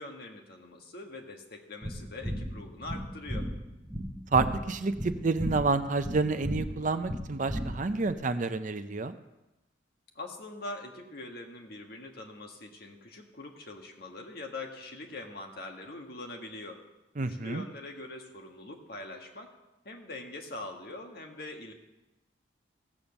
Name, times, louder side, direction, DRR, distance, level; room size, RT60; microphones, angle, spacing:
voice 1, 0.0-3.5 10.2-16.8 17.2-19.5 19.9-21.7, left 2 dB, 55° left, 2 dB, 1.7 m, -43 dB
sound 1, 1.8-8.1, equal, 10° right, 1.2 m, -36 dB
voice 2, 4.3-9.1 17.2-17.6, right 4 dB, 40° right, 10 dB, 0.6 m, -29 dB
16.0 x 7.1 x 7.1 m, 1.0 s
head